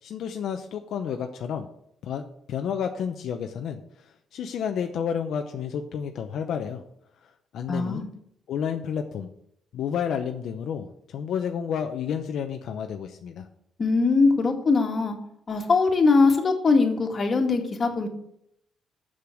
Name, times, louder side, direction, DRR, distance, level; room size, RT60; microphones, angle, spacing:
voice 1, 0.0-1.7 2.0-6.8 7.2-8.1 8.5-9.3 9.7-13.5, left 7 dB, 75° left, 5 dB, 0.7 m, -31 dB
voice 2, 7.7-8.1 13.8-15.2 15.5-18.1, left 4 dB, 40° left, 3 dB, 1.9 m, -21 dB
6.9 x 6.6 x 7.8 m, 0.73 s
cardioid pair, 105°, 0 cm